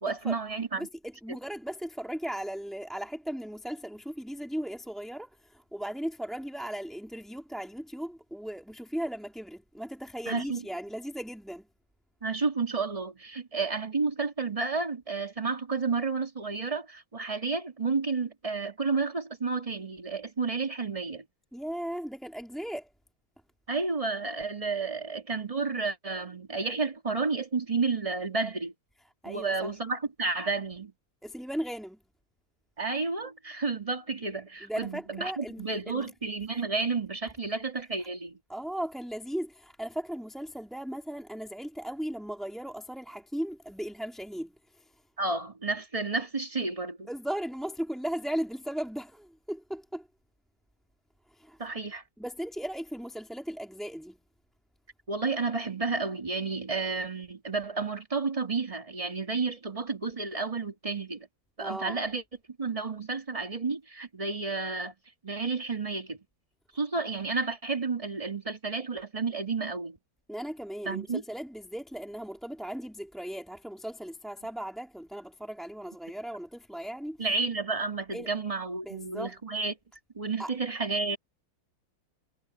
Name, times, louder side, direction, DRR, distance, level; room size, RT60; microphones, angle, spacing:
voice 1, 0.0-0.9 10.3-10.6 12.2-21.2 23.7-28.7 29.2-30.9 32.8-38.4 45.2-47.1 51.6-52.0 55.1-61.3 61.6-62.2 62.6-64.9 65.2-66.2 66.7-70.0 70.9-71.2 77.2-79.7 80.2-81.2, right 4 dB, 15° right, 1.8 m, -31 dB
voice 2, 0.8-11.7 21.5-22.9 29.2-29.7 31.2-32.0 34.6-36.1 38.5-44.9 47.1-50.1 51.3-51.6 52.2-54.2 61.6-62.0 70.3-77.3 78.1-78.3 78.8-79.4 80.4-80.5, equal, ahead, 1.7 m, -37 dB
omnidirectional pair, 2.4 m